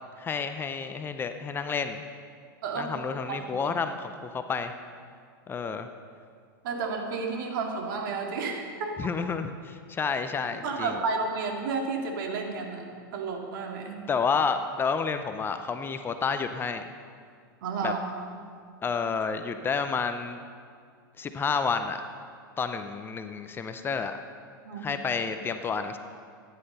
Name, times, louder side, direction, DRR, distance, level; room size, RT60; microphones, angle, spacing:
voice 1, 0.2-2.0 2.8-4.7 5.5-5.9 9.0-11.0 14.1-16.9 17.8-17.9 18.8-20.4 21.2-22.0 22.6-24.2 24.8-26.0, left 5 dB, 20° left, 8 dB, 0.7 m, -30 dB
voice 2, 6.6-9.0 10.6-12.9 13.1-14.0 17.6-18.0 24.6-24.9, right 4 dB, 65° right, 2 dB, 2.3 m, -31 dB
14.5 x 10.0 x 5.5 m, 2.1 s
hypercardioid pair, 125°, 12 cm